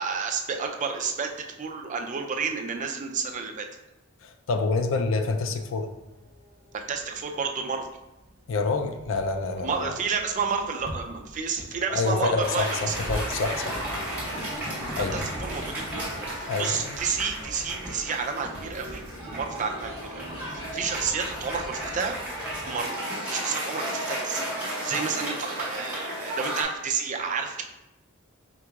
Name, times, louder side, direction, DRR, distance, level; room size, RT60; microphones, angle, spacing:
voice 1, 0.0-1.3 1.6-3.7 6.7-7.9 9.6-13.0 15.0-16.0 16.3-19.0 19.3-22.2 22.7-22.9 23.3-24.5 24.8-27.6, right 5 dB, 40° right, 3 dB, 0.4 m, -30 dB
voice 2, 4.2-5.9 8.5-9.9 11.9-13.8 15.0-15.2 16.5-16.8, left 3 dB, 70° left, 6 dB, 0.4 m, -27 dB
sound 1, 4.7-22.8, equal, 65° right, 0.9 m, -46 dB
sound 2, 10.2-11.8 12.1-16.1, equal, 20° left, 0.6 m, -39 dB
Cheering / Applause, 12.4-26.6, right 1 dB, 10° right, 1.3 m, -34 dB
4.6 x 3.8 x 2.3 m, 0.94 s
head